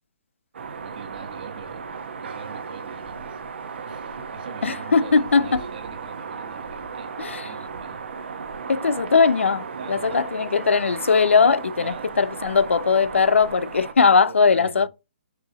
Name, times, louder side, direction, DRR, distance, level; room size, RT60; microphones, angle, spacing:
sound 1, 0.5-13.9, right 5 dB, 65° right, 1.0 m, -35 dB
voice 1, 0.8-1.9 2.2-3.4 3.8-8.4 9.7-10.3 11.8-12.2 14.3-14.9, right 6 dB, 50° right, 1.3 m, -42 dB
voice 2, 4.6-5.6 7.2-7.5 8.7-14.9, left 5 dB, 90° left, 0.4 m, -19 dB
6.7 x 2.8 x 2.8 m
hypercardioid pair, 150°, 6 cm